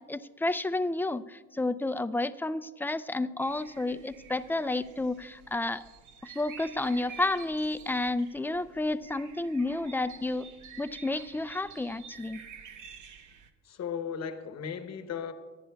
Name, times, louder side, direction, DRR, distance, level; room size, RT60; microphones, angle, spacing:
voice 1, 0.0-5.8 6.2-10.5 10.8-12.4, left 2 dB, 5° left, 0.3 m, -31 dB
sound 1, 3.4-13.5, right 7 dB, 80° right, 0.9 m, -50 dB
voice 2, 13.6-15.3, left 7 dB, 60° left, 1.0 m, -36 dB
25.5 x 10.5 x 2.3 m
cardioid pair, 90°, 30 cm